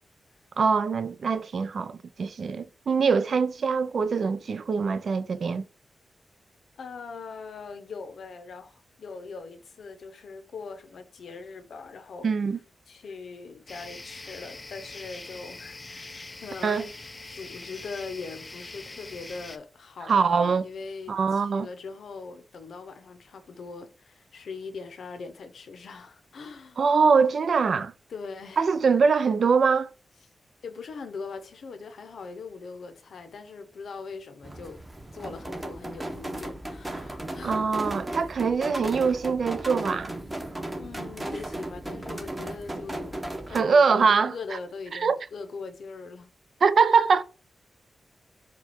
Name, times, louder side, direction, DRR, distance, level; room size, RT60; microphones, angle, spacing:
voice 1, 0.6-5.6 12.2-12.6 16.6-16.8 20.1-20.6 21.1-21.7 26.8-27.9 28.6-29.9 37.4-40.1 43.5-44.3 44.9-45.2 46.6-47.2, right 5 dB, 70° right, 0.4 m, -23 dB
voice 2, 6.8-12.3 12.9-16.9 17.3-26.8 28.1-28.6 30.6-34.8 35.1-37.7 40.7-43.2 43.5-46.3, left 4 dB, 85° left, 0.7 m, -41 dB
sound 1, 13.7-19.6, left 2 dB, 30° left, 0.4 m, -43 dB
sound 2, 34.4-43.6, right 1 dB, 15° right, 0.9 m, -36 dB
4.4 x 2.4 x 4.2 m
wide cardioid pair, 90°, 0 cm